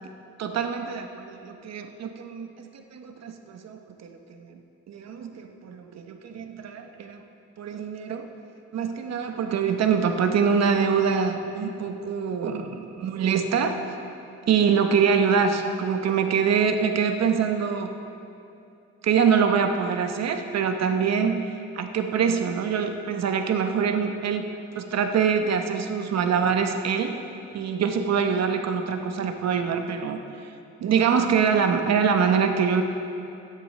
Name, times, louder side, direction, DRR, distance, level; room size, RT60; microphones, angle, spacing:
voice 1, 0.4-2.7 2.9-4.6 4.9-7.2 7.6-8.3 8.7-13.8 14.5-18.0 19.0-24.5 24.7-27.1 27.5-30.2 30.8-32.8, right 6 dB, 60° right, 6 dB, 0.9 m, -24 dB
16.5 x 10.0 x 3.3 m, 2.7 s
cardioid pair, 90°, 30 cm